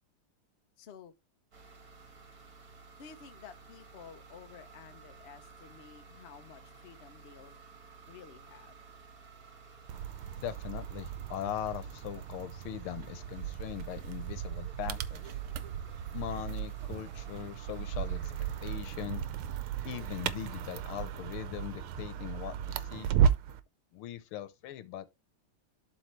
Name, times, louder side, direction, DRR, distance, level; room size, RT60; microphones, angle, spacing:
voice 1, 0.8-1.1 3.0-7.6 8.1-8.8, left 7 dB, 55° left, 0.7 m, -52 dB
sound 1, 1.5-18.8, right 4 dB, 45° right, 1.8 m, -54 dB
sound 2, 9.9-23.6, right 9 dB, 90° right, 1.6 m, -35 dB
voice 2, 10.3-15.3 16.1-18.3 18.6-19.2 19.9-23.1 23.9-25.1, left 11 dB, 85° left, 1.7 m, -40 dB
11.5 x 3.9 x 3.2 m
omnidirectional pair, 2.3 m